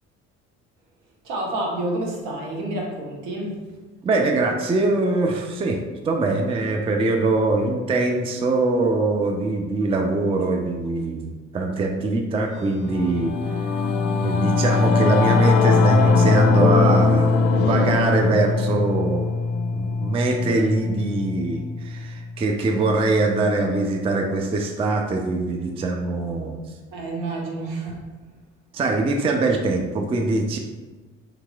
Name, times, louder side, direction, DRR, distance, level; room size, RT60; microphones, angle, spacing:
voice 1, 1.2-3.6 26.9-28.0, right 2 dB, 65° right, -1 dB, 0.9 m, -29 dB
voice 2, 4.0-13.7 14.2-17.3 17.6-19.3 19.7-26.6 28.7-30.6, right 2 dB, 15° right, 2 dB, 0.4 m, -23 dB
Singing / Musical instrument, 12.6-22.3, left 4 dB, 55° left, 0.5 m, -21 dB
3.7 x 2.9 x 2.2 m, 1.3 s
hypercardioid pair, 50°, 35 cm